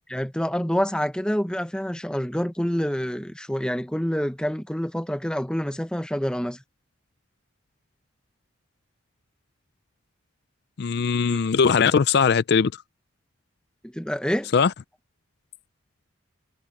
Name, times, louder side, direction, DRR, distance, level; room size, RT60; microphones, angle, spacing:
voice 1, 0.1-6.6 11.2-11.4 13.8-14.5, equal, 5° left, 0.8 m, -27 dB
voice 2, 10.8-12.7 14.5-14.7, left 6 dB, 55° left, 0.4 m, -20 dB
head